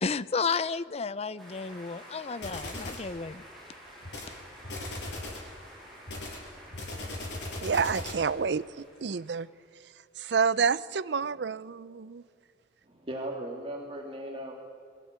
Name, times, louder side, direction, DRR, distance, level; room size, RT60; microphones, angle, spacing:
voice 1, 0.0-3.4, left 5 dB, 35° left, 17 dB, 0.5 m, -32 dB
sound 1, 1.4-9.7, equal, ahead, 6.9 m, -50 dB
sound 2, 2.4-3.1 4.0-4.3 4.6-5.5 6.1-8.3, left 2 dB, 80° left, 6.2 m, -38 dB
voice 2, 7.6-8.6 9.0-9.5 10.2-12.2, right 5 dB, 70° right, 18 dB, 0.5 m, -28 dB
voice 3, 12.8-14.5, right 1 dB, 30° right, 0 dB, 2.0 m, -38 dB
23.0 x 15.0 x 8.9 m, 2.3 s
head